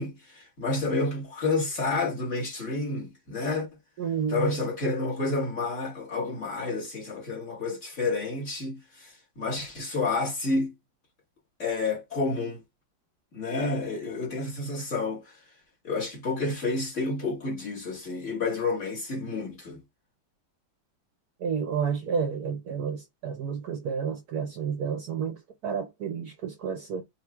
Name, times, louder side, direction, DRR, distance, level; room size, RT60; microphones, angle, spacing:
voice 1, 0.0-3.7 4.3-10.7 11.6-12.6 13.3-15.4 15.8-19.8, left 3 dB, 40° left, 2.0 m, -30 dB
voice 2, 4.0-4.6 21.4-27.0, right 6 dB, 65° right, 1.1 m, -30 dB
5.3 x 2.8 x 3.4 m
omnidirectional pair, 2.1 m